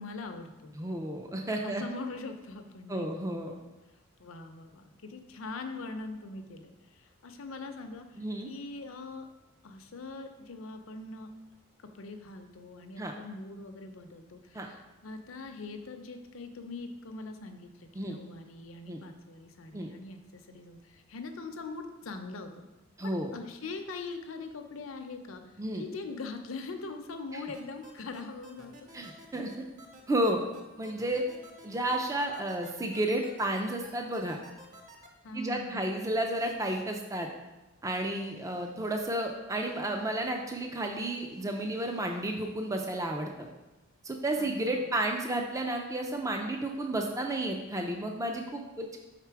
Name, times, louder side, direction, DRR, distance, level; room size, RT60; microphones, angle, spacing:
voice 1, 0.0-0.7 1.6-3.1 4.2-9.3 9.6-11.3 11.8-22.6 23.0-28.9 35.2-36.0 44.4-44.9, left 3 dB, 70° left, 6 dB, 0.6 m, -42 dB
voice 2, 0.8-1.8 2.9-3.5 8.2-8.5 13.0-13.1 14.5-14.7 18.0-18.2 18.9-19.0 19.7-19.9 23.0-23.3 25.6-25.8 27.3-27.4 28.9-29.5 30.1-30.4 30.8-31.3 31.6-34.4 35.3-37.3 37.8-43.5 44.0-49.0, right 1 dB, 15° right, 3 dB, 0.4 m, -32 dB
sound 1, 27.5-35.1, right 2 dB, 40° right, 0.8 m, -51 dB
5.8 x 4.1 x 4.6 m, 1.1 s
head